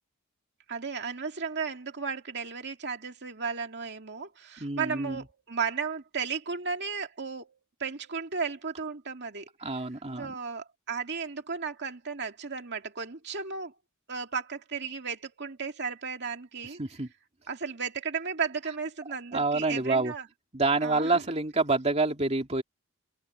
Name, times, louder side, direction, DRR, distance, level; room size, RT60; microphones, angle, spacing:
voice 1, 0.7-7.5 7.8-9.5 10.1-13.7 14.1-16.8 17.5-20.2 20.8-21.1, right 5 dB, 50° right, 2.3 m, -34 dB
voice 2, 4.6-5.2 9.6-10.4 16.6-17.1 19.3-20.1 20.5-22.6, right 3 dB, 30° right, 2.5 m, -27 dB
open air
head